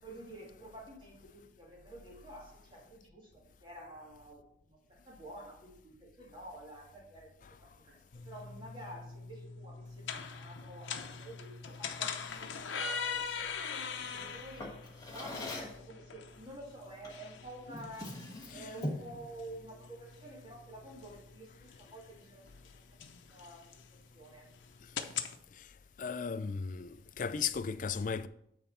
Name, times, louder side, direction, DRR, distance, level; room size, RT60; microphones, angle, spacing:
voice 1, 0.0-18.2 18.5-23.0 23.3-24.5, right 1 dB, 25° right, 2.3 m, -50 dB
sound 1, 8.1-25.4, left 6 dB, 85° left, 0.7 m, -43 dB
Drawer open or close, 14.6-15.8 17.0-17.3 17.7-19.2, left 1 dB, 20° left, 1.4 m, -41 dB
voice 2, 26.0-28.3, left 6 dB, 45° left, 0.4 m, -36 dB
9.1 x 4.0 x 5.7 m
head